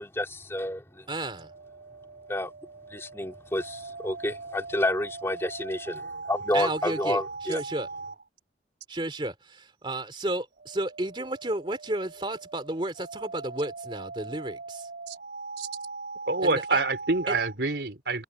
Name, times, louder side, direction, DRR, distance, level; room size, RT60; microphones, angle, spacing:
voice 1, 0.0-1.0 2.3-2.5 2.9-7.6, left 1 dB, 15° left, 3.0 m, -30 dB
sound 1, 0.9-8.2 10.3-17.6, right 3 dB, 60° right, 4.0 m, -41 dB
voice 2, 1.1-1.5 6.5-7.9 8.9-14.9 16.4-16.8 17.3-17.4, right 1 dB, 30° right, 2.9 m, -32 dB
voice 3, 16.3-18.2, right 3 dB, 75° right, 3.7 m, -26 dB
head